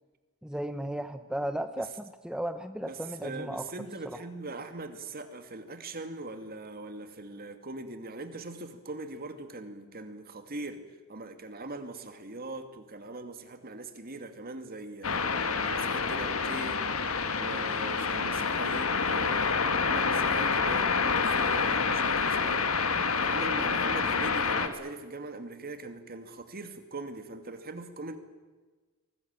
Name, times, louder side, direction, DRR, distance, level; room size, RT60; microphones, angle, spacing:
voice 1, 0.4-3.6, right 1 dB, 5° right, 9 dB, 0.8 m, -35 dB
voice 2, 2.8-10.8 11.1-16.8 17.3-22.7 23.2-28.2, right 2 dB, 45° right, 8 dB, 2.4 m, -41 dB
sound 1, 15.0-24.7, left 5 dB, 70° left, 2.0 m, -28 dB
23.5 x 19.5 x 8.9 m, 1.3 s
head